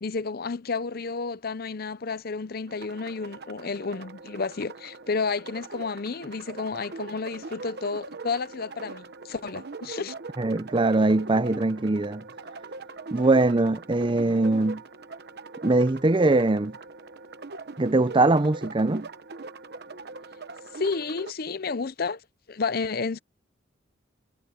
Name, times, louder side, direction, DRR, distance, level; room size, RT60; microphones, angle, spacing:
voice 1, 0.0-10.1 20.7-22.2 22.5-23.2, left 4 dB, 55° left, 0.7 m, -31 dB
sound 1, 2.7-21.3, right 3 dB, 55° right, 1.0 m, -42 dB
voice 2, 10.4-12.2 13.1-14.8 15.6-16.8 17.8-19.1, right 2 dB, 25° right, 0.6 m, -22 dB
head